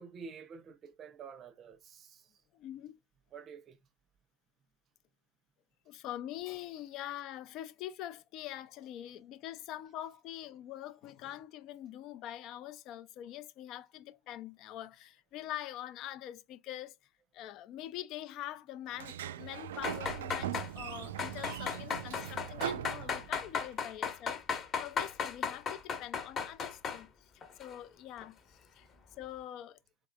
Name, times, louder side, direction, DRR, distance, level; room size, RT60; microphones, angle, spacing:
voice 1, 0.0-2.3 3.3-3.8, right 5 dB, 35° right, 0.6 m, -49 dB
voice 2, 2.5-3.0 5.9-16.9 17.3-27.1 27.6-28.4 28.8-28.9 29.2-29.8, left 12 dB, 50° left, 0.5 m, -44 dB
Sliding door, 18.9-23.7, right 10 dB, 90° right, 0.3 m, -40 dB
sound 1, 19.8-20.7 21.2-27.0 27.4-27.8 28.2-28.3, left 6 dB, 30° left, 1.1 m, -36 dB
3.7 x 3.6 x 2.3 m
supercardioid pair, 120°, 0 cm